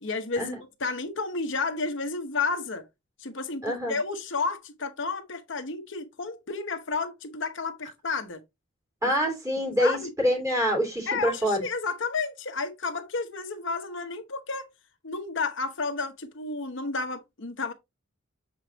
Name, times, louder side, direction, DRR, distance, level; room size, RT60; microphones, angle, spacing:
voice 1, 0.0-2.8 3.2-8.4 9.0-9.1 9.8-10.1 11.1-14.7 15.0-17.7, left 4 dB, 60° left, 0.9 m, -31 dB
voice 2, 3.6-4.0 9.0-11.6, equal, 15° right, 3.1 m, -26 dB
7.1 x 5.0 x 2.8 m
head